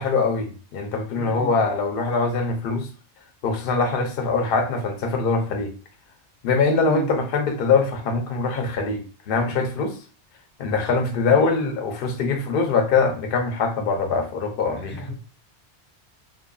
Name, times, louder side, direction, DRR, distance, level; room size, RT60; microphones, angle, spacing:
voice 1, 0.0-2.9 3.4-5.7 6.4-10.0 10.6-15.1, left 4 dB, 60° left, 0.7 m, -23 dB
voice 2, 1.2-1.5 6.8-7.1 11.3-11.7 14.7-15.1, equal, 20° left, 0.3 m, -34 dB
2.6 x 2.5 x 2.2 m
omnidirectional pair, 1.2 m